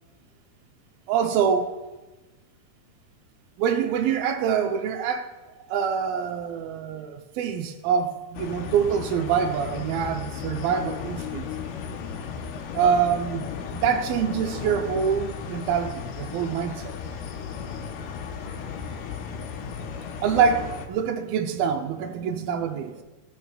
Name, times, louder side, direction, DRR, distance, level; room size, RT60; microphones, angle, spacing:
voice 1, 1.1-1.7 3.6-5.3 5.7-11.5 12.7-13.5 13.7-16.9 20.2-23.0, right 7 dB, 80° right, 2.3 m, -25 dB
sound 1, 8.3-20.9, left 6 dB, 80° left, 2.6 m, -35 dB
15.5 x 9.0 x 2.2 m
omnidirectional pair, 4.5 m